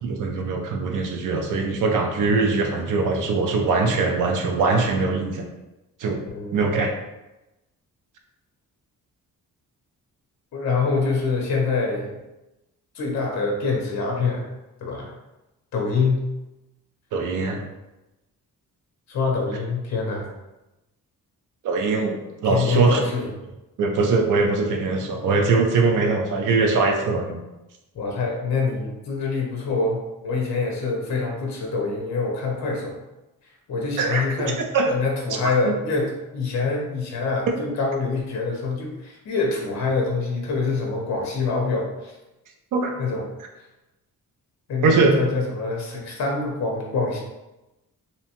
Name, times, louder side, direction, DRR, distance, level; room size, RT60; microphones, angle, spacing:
voice 1, 0.0-5.5 6.0-6.2 6.5-6.9 17.1-17.6 21.6-22.2 22.4-23.0 23.8-27.4 34.0-34.2 34.7-34.9 35.6-35.7 42.7-42.9 44.8-45.2, right 4 dB, 65° right, 3 dB, 0.5 m, -21 dB
voice 2, 10.5-12.1 12.9-14.5 14.8-15.1 15.7-16.2 19.1-20.3 22.4-23.3 27.9-33.0 33.7-34.6 34.9-42.1 43.0-43.2 44.7-47.2, left 4 dB, 50° left, -1 dB, 0.6 m, -25 dB
2.7 x 2.1 x 2.8 m, 1.0 s
wide cardioid pair, 175°, 35 cm